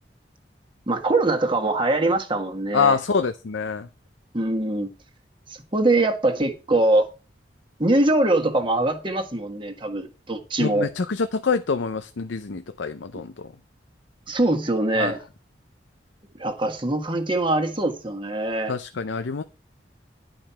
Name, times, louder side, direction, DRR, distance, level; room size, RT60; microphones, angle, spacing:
voice 1, 0.9-3.0 4.3-4.9 5.5-7.1 7.8-10.9 14.3-15.2 16.3-18.7, right 2 dB, 25° right, 1.5 m, -23 dB
voice 2, 2.7-3.9 10.6-13.3 15.0-15.1 18.7-19.4, left 5 dB, 90° left, 0.6 m, -25 dB
11.0 x 5.2 x 5.7 m
head